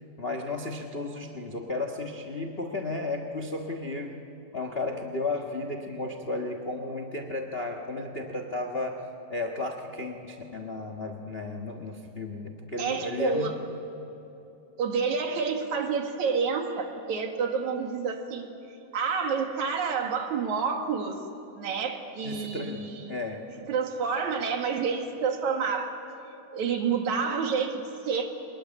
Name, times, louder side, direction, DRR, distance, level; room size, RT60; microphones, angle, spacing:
voice 1, 0.2-4.2 4.5-9.0 9.3-13.5 22.2-23.4, left 2 dB, 40° left, 5 dB, 0.8 m, -33 dB
voice 2, 12.8-13.5 14.8-18.5 18.9-21.2 21.6-23.2 23.7-25.9 26.5-28.3, right 5 dB, 75° right, 3 dB, 3.3 m, -29 dB
24.0 x 20.5 x 10.0 m, 3.0 s
omnidirectional pair, 3.4 m